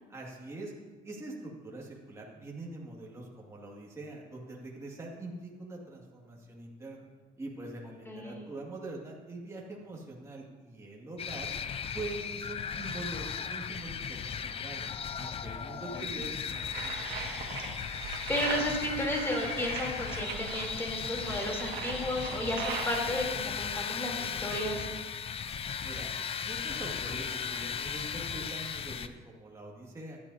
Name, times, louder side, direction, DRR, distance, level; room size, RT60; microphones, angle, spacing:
voice 1, 0.1-0.7 1.0-7.1 7.4-11.5 11.9-14.9 15.1-17.0 25.8-26.1 26.4-30.2, right 2 dB, 15° right, -3 dB, 2.1 m, -43 dB
voice 2, 8.1-8.4 15.7-16.1 17.8-18.0 18.3-24.9, left 1 dB, 15° left, -2 dB, 3.3 m, -33 dB
sound 1, 11.2-29.1, left 7 dB, 35° left, 0.5 m, -37 dB
sound 2, 16.5-23.3, right 4 dB, 75° right, 1.8 m, -39 dB
15.0 x 11.0 x 2.8 m, 1.3 s
cardioid pair, 110°, 17 cm